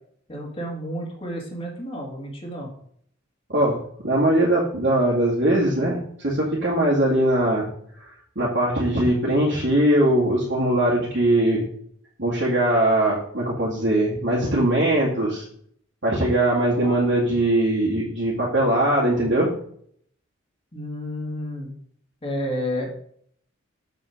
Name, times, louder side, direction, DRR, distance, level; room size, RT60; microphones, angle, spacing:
voice 1, 0.3-2.7 16.8-17.0 20.7-21.7 22.2-22.9, equal, 30° left, -1 dB, 2.2 m, -31 dB
voice 2, 4.0-7.7 8.0-8.1 8.4-11.6 12.2-15.4 16.0-19.5, right 1 dB, 60° right, -7 dB, 2.2 m, -21 dB
7.4 x 5.5 x 5.0 m, 0.64 s
head